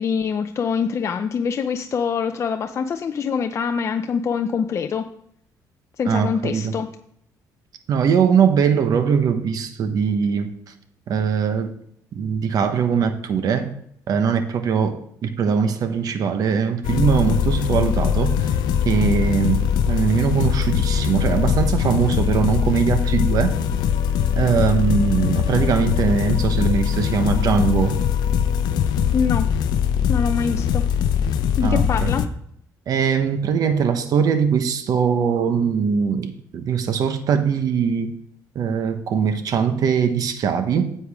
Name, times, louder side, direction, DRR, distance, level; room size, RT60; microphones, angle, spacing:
voice 1, 0.0-5.0 6.0-6.9 29.1-29.5 30.1-30.8 31.6-32.2, left 6 dB, 40° left, 7 dB, 0.5 m, -24 dB
voice 2, 6.1-6.7 7.9-10.5 11.1-11.7 12.1-13.7 14.1-18.4 18.8-23.5 24.3-28.0 31.6-32.1 32.9-38.1 38.5-41.0, right 7 dB, 60° right, 8 dB, 1.1 m, -21 dB
sound 1, 16.8-32.3, left 8 dB, 85° left, 0.6 m, -21 dB
9.8 x 8.0 x 3.6 m, 0.70 s
cardioid pair, 115°, 7 cm